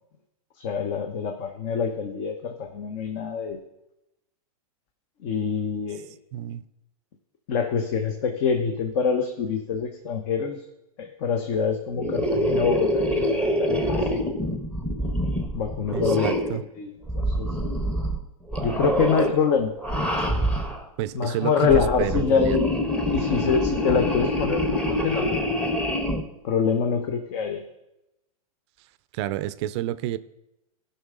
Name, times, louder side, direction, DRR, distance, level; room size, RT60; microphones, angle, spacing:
voice 1, 0.6-3.6 5.2-6.1 7.5-10.6 11.0-14.2 15.5-16.5 16.8-17.5 18.6-19.7 21.1-22.8 23.1-25.5 26.4-27.6, left 6 dB, 50° left, 1.0 m, -25 dB
voice 2, 6.3-6.6 15.9-16.6 21.0-22.6 29.1-30.2, right 13 dB, 45° right, 0.4 m, -29 dB
sound 1, 12.0-16.6 17.1-18.2 18.5-19.3 19.8-20.8 21.5-26.2, equal, 5° left, 0.9 m, -25 dB
14.5 x 5.6 x 3.7 m
hypercardioid pair, 120°, 19 cm